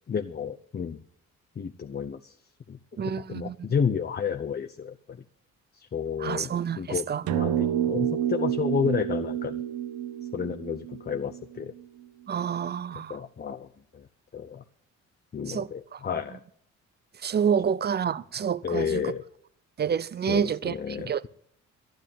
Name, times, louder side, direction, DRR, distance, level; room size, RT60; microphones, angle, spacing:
voice 1, 0.1-1.0 1.6-2.3 2.7-2.8 3.0-5.2 5.7-9.6 10.3-11.7 13.1-13.7 13.9-14.1 14.3-14.6 15.3-16.4 18.6-19.2 20.3-21.3, left 6 dB, 35° left, 0.7 m, -31 dB
voice 2, 3.0-3.5 6.2-6.8 7.1-7.2 12.3-13.1 15.5-15.7 17.2-19.0 19.8-21.2, right 7 dB, 35° right, 0.6 m, -28 dB
sound 1, 7.3-11.8, right 10 dB, 75° right, 0.8 m, -29 dB
12.5 x 10.5 x 9.2 m
cardioid pair, 90°, 30 cm